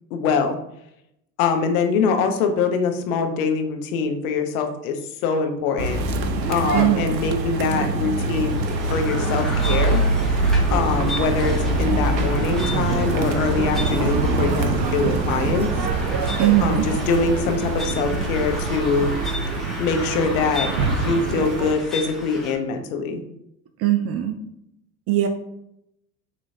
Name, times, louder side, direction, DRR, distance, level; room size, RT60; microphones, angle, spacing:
voice 1, 0.1-0.6 1.4-6.0 6.5-8.6 8.9-10.0 10.7-15.7 16.6-19.1 19.8-23.2, left 5 dB, 60° left, 5 dB, 0.9 m, -23 dB
Suburban Shopping Centre Zimbabwe, 5.8-21.7, right 3 dB, 85° right, 0.6 m, -24 dB
voice 2, 6.7-7.2 16.4-16.9 23.8-24.4 25.1-25.3, right 13 dB, 30° right, 8 dB, 0.4 m, -20 dB
sound 1, 8.5-22.5, left 1 dB, ahead, 1.2 m, -33 dB
6.3 x 3.0 x 2.7 m, 0.80 s
figure-of-eight pair, 70°, 49 cm